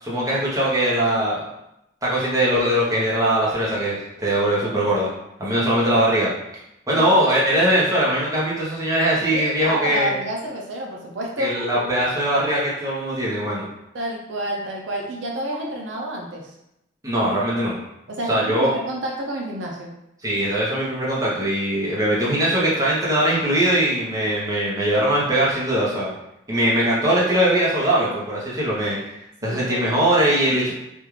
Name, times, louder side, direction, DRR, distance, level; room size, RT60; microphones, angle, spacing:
voice 1, 0.0-1.4 2.0-5.1 5.4-6.3 6.9-10.1 11.4-13.7 17.0-17.8 18.3-18.7 20.2-26.1 26.5-30.7, right 1 dB, 20° right, -6 dB, 0.8 m, -21 dB
voice 2, 9.3-11.6 13.9-16.5 18.1-19.9 29.4-29.9, equal, 70° right, -1 dB, 0.5 m, -29 dB
3.5 x 2.4 x 3.1 m, 0.84 s
head